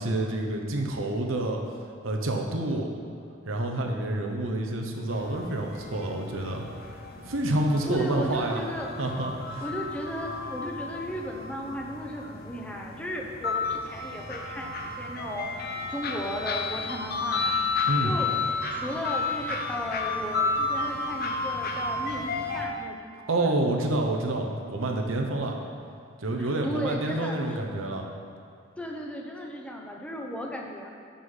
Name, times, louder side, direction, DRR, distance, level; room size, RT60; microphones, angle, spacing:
voice 1, 0.0-1.6 2.0-2.9 3.5-6.6 7.2-8.6 9.0-9.7 17.9-18.2 23.3-25.6 26.2-28.1, right 2 dB, 80° right, 2 dB, 0.9 m, -28 dB
sound 1, 5.1-22.7, left 4 dB, 50° left, 0.7 m, -32 dB
voice 2, 7.8-8.9 9.6-17.6 18.0-18.3 18.7-23.5 26.4-27.4 28.8-30.9, equal, 5° left, 0 dB, 0.7 m, -35 dB
6.2 x 5.5 x 5.6 m, 2.3 s
head